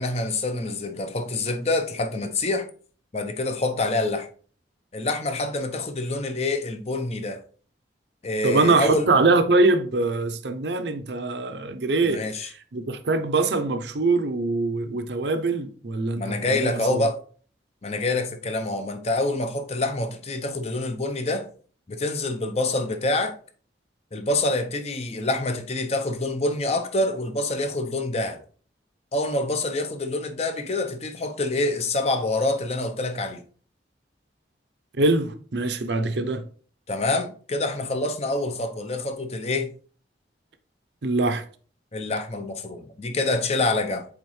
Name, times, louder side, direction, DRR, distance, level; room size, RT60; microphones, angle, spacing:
voice 1, 0.0-2.7 3.1-4.3 4.9-7.4 8.2-9.1 12.0-12.5 16.2-17.2 17.8-21.5 21.9-23.3 24.1-28.4 29.1-33.4 36.9-39.7 41.9-44.0, left 2 dB, 35° left, 0.7 m, -26 dB
voice 2, 8.4-12.2 12.7-17.0 35.0-36.4 41.0-41.4, right 3 dB, 70° right, 0.7 m, -23 dB
8.2 x 3.6 x 3.2 m
head